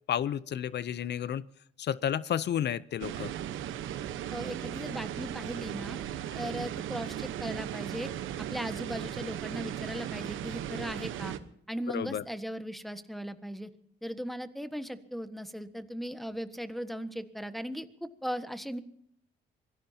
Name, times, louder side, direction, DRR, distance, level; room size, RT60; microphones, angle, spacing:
voice 1, 0.1-1.4 1.8-3.3 11.9-12.2, left 10 dB, 60° left, 18 dB, 0.6 m, -31 dB
sound 1, 3.0-11.4, right 11 dB, 85° right, 1.1 m, -37 dB
voice 2, 4.3-6.0 6.3-8.1 8.4-11.3 11.7-13.7 14.0-18.8, equal, ahead, 10 dB, 1.5 m, -38 dB
25.5 x 18.0 x 2.9 m, 0.69 s
cardioid pair, 90°, 20 cm